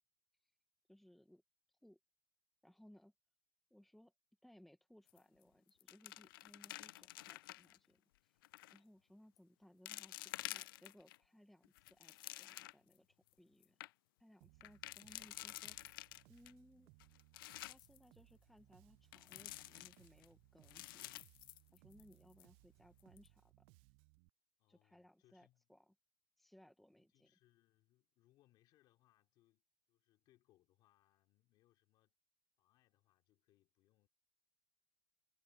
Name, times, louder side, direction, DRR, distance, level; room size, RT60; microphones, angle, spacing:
voice 1, 0.9-1.4 1.7-2.0 2.6-3.1 3.7-4.1 4.4-8.4 8.7-13.8 14.2-15.8 16.3-16.9 17.6-21.2 21.7-23.7 24.7-25.9 26.4-27.3, equal, ahead, 1.1 m, -65 dB
sound 1, 5.1-5.4 5.7-7.8 8.4-8.8 9.4-9.5 9.9-11.2 11.6-12.9 13.3-13.4 13.6-13.9 14.6-16.5 17.0-18.0 19.1-20.3 20.6-22.1 22.4-22.5 23.0-23.3, left 18 dB, 70° left, 0.4 m, -50 dB
Bass guitar, 14.4-24.3, right 25 dB, 45° right, 0.5 m, -68 dB
voice 2, 24.6-25.7 27.0-29.6 29.9-32.1 32.6-34.1, left 16 dB, 35° left, 3.1 m, -75 dB
supercardioid pair, 155°, 12 cm